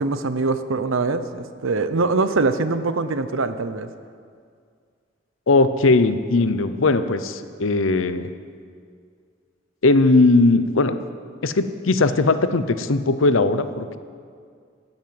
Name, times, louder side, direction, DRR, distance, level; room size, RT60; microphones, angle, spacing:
voice 1, 0.0-3.9, right 3 dB, 85° right, 11 dB, 0.8 m, -23 dB
voice 2, 5.5-8.3 9.8-11.0 11.4-14.0, left 3 dB, 80° left, 11 dB, 0.7 m, -19 dB
15.5 x 9.0 x 7.7 m, 2.2 s
head